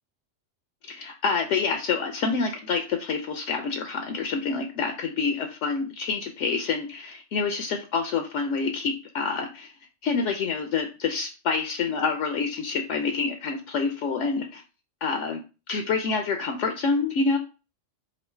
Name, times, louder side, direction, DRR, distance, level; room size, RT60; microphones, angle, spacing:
voice 1, 0.9-9.7 10.0-14.6 15.0-15.4 15.7-17.4, left 4 dB, 75° left, 4 dB, 0.9 m, -27 dB
3.1 x 2.5 x 4.3 m, 0.31 s
omnidirectional pair, 1.3 m